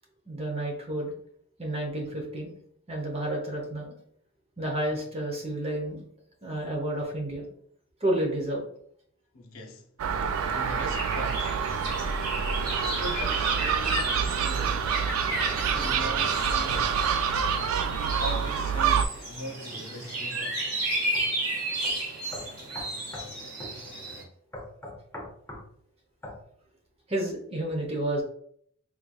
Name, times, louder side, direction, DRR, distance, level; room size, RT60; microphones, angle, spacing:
voice 1, 0.3-1.1 1.6-2.5 2.9-3.9 4.6-6.0 6.4-7.5 8.0-8.6 27.1-28.2, right 1 dB, 30° right, 0.8 m, -30 dB
voice 2, 9.3-9.9 10.5-11.6 12.7-15.1 15.4-16.9 18.0-20.7, left 1 dB, 75° left, 0.6 m, -40 dB
Gull seagull, 10.0-19.1, right 7 dB, 75° right, 0.3 m, -27 dB
sound 1, 10.3-24.2, right 1 dB, 90° right, 1.4 m, -33 dB
sound 2, 21.1-21.3 21.8-21.9 22.3-23.3 23.6-23.8 24.5-25.7 26.2-26.4, left 1 dB, 10° left, 0.7 m, -40 dB
3.7 x 3.2 x 2.2 m
head